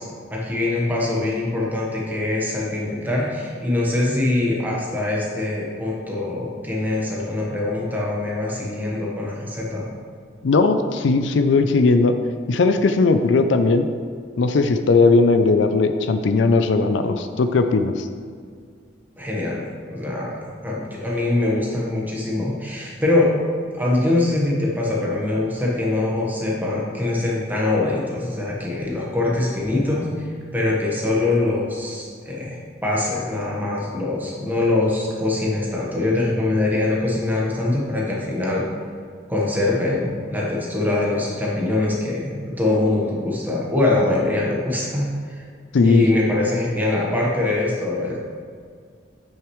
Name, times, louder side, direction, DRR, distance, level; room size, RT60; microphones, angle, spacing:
voice 1, 0.0-9.9 19.2-23.3 23.7-38.7 39.3-45.4 45.8-48.2, left 2 dB, 10° right, -4 dB, 1.2 m, -23 dB
voice 2, 10.4-12.2 12.5-13.9 14.4-18.1 45.7-46.1, left 3 dB, 75° left, 8 dB, 0.4 m, -18 dB
8.4 x 6.3 x 3.1 m, 2.1 s
head